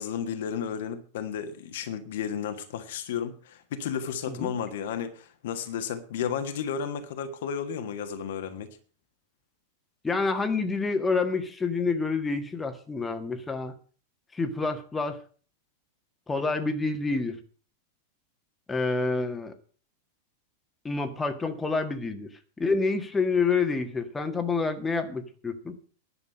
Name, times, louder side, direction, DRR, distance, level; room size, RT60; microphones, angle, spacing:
voice 1, 0.0-8.7, left 7 dB, 55° left, 1.5 m, -33 dB
voice 2, 10.0-13.7 14.3-15.2 16.3-17.4 18.7-19.5 20.8-22.3 22.6-25.7, left 4 dB, 10° left, 1.6 m, -28 dB
11.0 x 7.1 x 8.4 m
figure-of-eight pair, 90°, 0 cm